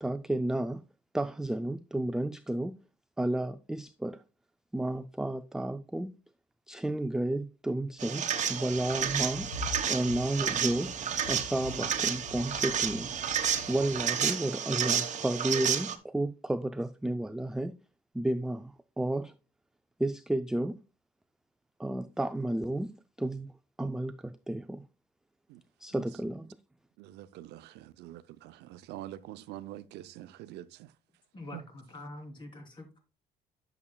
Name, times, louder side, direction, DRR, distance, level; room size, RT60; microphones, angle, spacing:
voice 1, 0.0-0.8 1.1-2.8 3.2-4.2 4.7-6.1 6.7-9.5 9.9-10.9 11.3-13.1 13.7-17.7 18.1-19.3 20.0-20.8 21.8-23.5 23.8-24.8 25.8-26.5, right 1 dB, 5° right, 0.3 m, -32 dB
sound 1, 8.0-16.0, right 8 dB, 45° right, 1.1 m, -31 dB
sound 2, 8.7-14.0, left 4 dB, 70° left, 3.2 m, -45 dB
voice 2, 27.0-30.9 31.5-31.6, right 14 dB, 80° right, 0.6 m, -45 dB
voice 3, 31.3-33.0, left 1 dB, 30° left, 3.2 m, -45 dB
10.5 x 6.9 x 2.3 m
cardioid pair, 110°, 17 cm